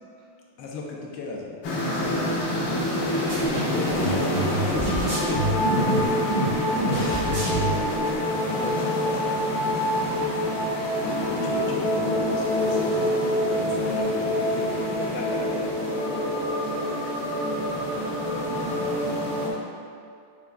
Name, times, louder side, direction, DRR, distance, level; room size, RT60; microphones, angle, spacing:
voice 1, 0.6-2.3 3.4-9.4 11.0-15.6, left 3 dB, 80° left, -2 dB, 1.4 m, -35 dB
sound 1, 1.6-19.5, left 1 dB, 65° left, 1.3 m, -26 dB
sound 2, 3.3-8.2, right 1 dB, 55° right, 2.1 m, -27 dB
voice 2, 16.2-17.1 17.3-19.2, right 1 dB, 80° right, -7 dB, 1.6 m, -48 dB
5.7 x 3.3 x 2.2 m, 2.4 s
omnidirectional pair, 2.3 m